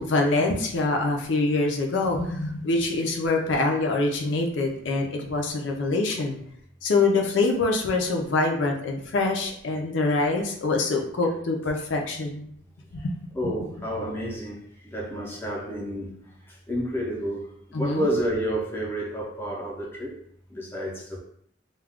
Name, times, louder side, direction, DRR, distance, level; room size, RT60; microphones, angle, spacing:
voice 1, 0.0-6.4 6.8-12.5 12.9-13.0 13.4-13.5 17.7-18.1, left 3 dB, 80° left, 0.5 m, -25 dB
voice 2, 13.3-20.2 20.5-21.2, equal, 10° left, 0.6 m, -30 dB
2.3 x 2.2 x 3.4 m
head